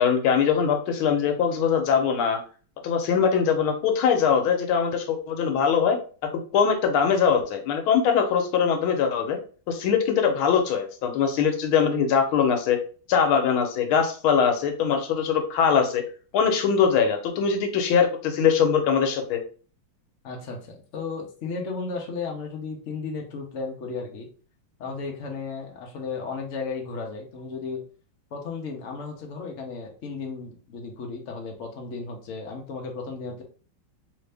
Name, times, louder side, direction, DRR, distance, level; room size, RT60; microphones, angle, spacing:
voice 1, 0.0-2.4 2.8-6.0 6.5-9.4 9.7-12.8 13.1-16.0 16.3-19.4, left 7 dB, 90° left, 5 dB, 1.6 m, -22 dB
voice 2, 20.2-24.3 24.8-27.8 28.3-33.4, left 4 dB, 55° left, 0 dB, 0.9 m, -34 dB
3.3 x 2.7 x 3.3 m, 0.39 s
omnidirectional pair, 2.2 m